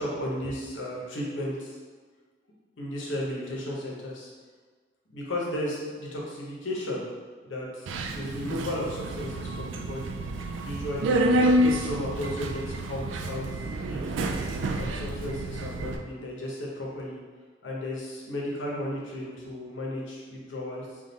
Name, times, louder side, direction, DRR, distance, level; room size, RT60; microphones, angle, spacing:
voice 1, 0.0-1.8 2.8-4.3 5.1-7.0 7.4-10.2 10.6-11.3 11.6-13.4 13.9-14.2 14.7-17.2 17.6-21.0, left 1 dB, 90° left, -3 dB, 0.9 m, -34 dB
Subway metro underground, 7.9-16.0, right 1 dB, 85° right, 0.3 m, -28 dB
3.7 x 2.4 x 4.0 m, 1.4 s
head